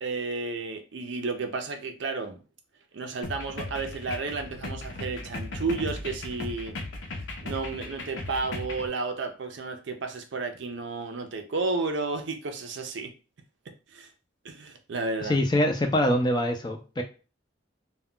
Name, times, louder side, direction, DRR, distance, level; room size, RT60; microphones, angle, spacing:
voice 1, 0.0-2.4 2.9-6.8 7.1-13.1 13.7-14.1 14.4-15.4, right 3 dB, 65° right, 6 dB, 0.5 m, -32 dB
sound 1, 3.2-8.9, left 2 dB, 65° left, 0.6 m, -37 dB
voice 2, 15.2-17.0, left 1 dB, 20° left, 4 dB, 0.4 m, -24 dB
2.2 x 2.2 x 3.7 m, 0.34 s
head